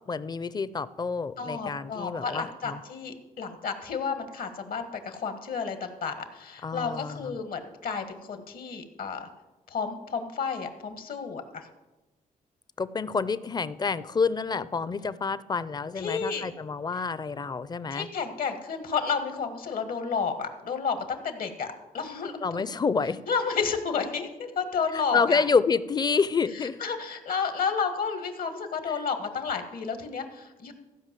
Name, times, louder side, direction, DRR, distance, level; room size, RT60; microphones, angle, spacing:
voice 1, 0.1-2.8 6.6-7.4 12.8-18.1 22.4-23.2 24.9-26.8 28.9-29.0, left 5 dB, 25° left, 16 dB, 0.5 m, -28 dB
voice 2, 1.4-9.3 9.7-11.7 16.0-16.5 17.9-22.6 23.3-25.4 26.8-30.7, left 5 dB, 70° left, 8 dB, 1.5 m, -31 dB
15.0 x 5.2 x 7.5 m, 1.1 s
cardioid pair, 95°, 15 cm